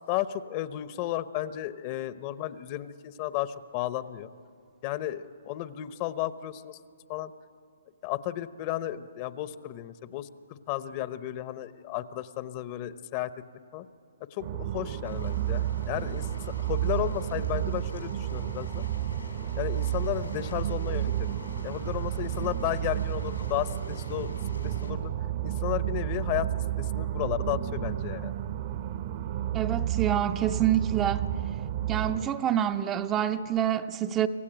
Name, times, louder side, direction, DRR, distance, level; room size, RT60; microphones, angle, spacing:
voice 1, 0.1-4.3 4.8-6.8 7.1-7.3 8.0-13.3 13.7-13.9 14.3-16.3 16.7-18.8 19.6-21.4 21.6-24.3 24.6-25.1 25.4-28.4, left 13 dB, 35° left, 0.8 m, -33 dB
sound 1, 14.4-32.3, right 12 dB, 45° right, 0.8 m, -31 dB
Ocean, 15.0-24.9, left 4 dB, 90° left, 5.7 m, -47 dB
voice 2, 29.5-31.3 31.9-34.3, right 10 dB, 20° right, 0.6 m, -27 dB
26.0 x 15.5 x 9.0 m
hypercardioid pair, 140°, 0 cm